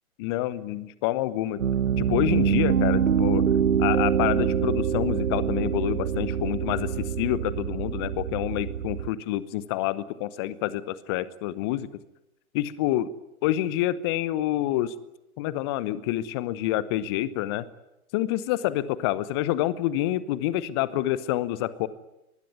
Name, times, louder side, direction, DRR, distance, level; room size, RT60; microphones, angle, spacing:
voice 1, 0.2-1.6 2.0-3.4 3.8-11.9 12.5-13.1 13.4-14.9 15.4-17.7 18.1-21.9, left 14 dB, 20° left, 17 dB, 0.9 m, -27 dB
Piano, 1.6-9.1, right 8 dB, 60° right, 1.2 m, -25 dB
24.0 x 20.5 x 9.6 m, 0.89 s
figure-of-eight pair, 130°, 43 cm